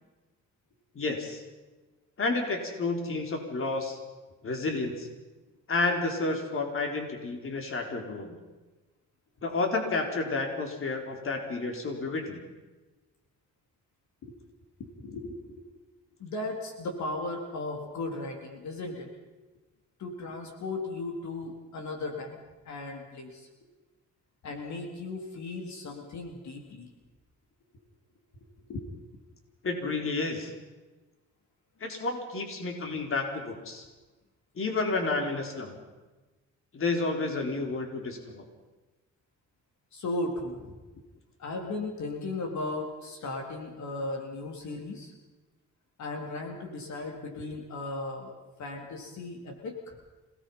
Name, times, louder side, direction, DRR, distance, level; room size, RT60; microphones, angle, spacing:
voice 1, 1.0-1.4 2.2-4.0 4.4-5.1 5.7-8.4 9.4-12.4 29.6-30.5 31.8-33.8 34.6-35.7 36.7-38.4, left 3 dB, 45° left, 3 dB, 4.2 m, -30 dB
voice 2, 14.8-15.6 16.2-19.1 20.0-23.5 24.4-26.9 28.7-28.8 39.9-40.8 41.4-45.1 46.0-50.0, left 2 dB, 70° left, 2 dB, 3.8 m, -36 dB
27.0 x 18.5 x 5.7 m, 1.2 s
cardioid pair, 90°, 30 cm